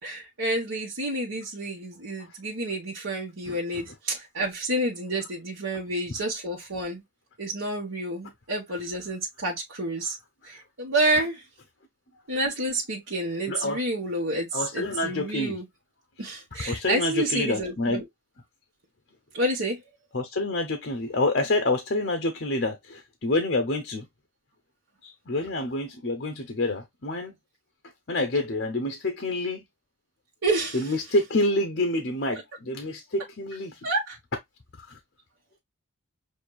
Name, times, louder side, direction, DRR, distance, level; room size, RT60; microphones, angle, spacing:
voice 1, 0.0-7.0 7.4-10.2 10.4-11.4 12.3-15.6 16.2-18.0 19.3-19.8 30.4-30.8 33.8-34.2, right 1 dB, 80° right, 1.2 m, -29 dB
voice 2, 13.5-13.8 14.5-15.6 16.7-18.0 20.1-24.1 25.0-27.4 28.1-29.6 30.7-33.9 34.8-35.0, left 2 dB, 55° left, 0.8 m, -27 dB
6.5 x 2.7 x 2.3 m
head